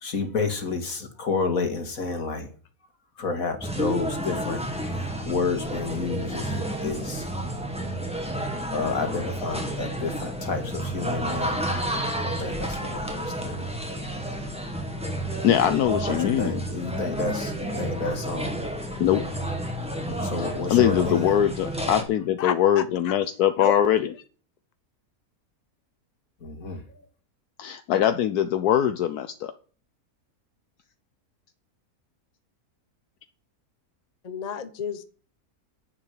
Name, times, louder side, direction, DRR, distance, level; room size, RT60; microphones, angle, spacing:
voice 1, 0.0-2.5 3.2-4.8 5.2-7.3 8.7-11.7 12.2-13.7 16.1-18.7 20.1-21.4 26.4-26.8, left 4 dB, 60° left, 5 dB, 2.5 m, -30 dB
sound 1, 3.6-22.0, right 1 dB, 5° right, 1.9 m, -31 dB
voice 2, 15.4-16.6 19.0-19.2 20.4-24.1 27.6-29.5, left 10 dB, 75° left, 10 dB, 1.2 m, -22 dB
voice 3, 22.4-23.1 23.6-23.8 34.2-35.0, left 7 dB, 35° left, 11 dB, 0.8 m, -31 dB
10.5 x 7.7 x 8.4 m, 0.41 s
omnidirectional pair, 1.7 m